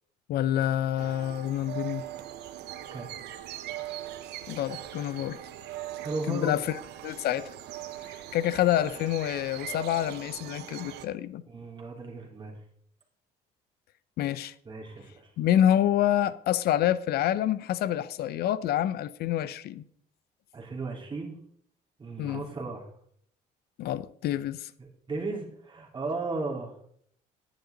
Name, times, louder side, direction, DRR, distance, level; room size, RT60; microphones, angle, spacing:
voice 1, 0.3-2.0 4.5-5.4 6.3-6.6 7.0-7.5 8.3-11.4 14.2-14.5 15.4-19.8 22.2-22.4 23.8-24.7, left 11 dB, 70° left, 0.6 m, -27 dB
sound 1, 1.0-11.1, right 13 dB, 80° right, 1.0 m, -41 dB
voice 2, 6.0-6.5 11.5-12.6 14.7-15.3 20.5-21.4 22.0-22.9 24.8-26.7, right 3 dB, 30° right, 3.7 m, -35 dB
11.0 x 10.5 x 3.9 m
cardioid pair, 110°, 17 cm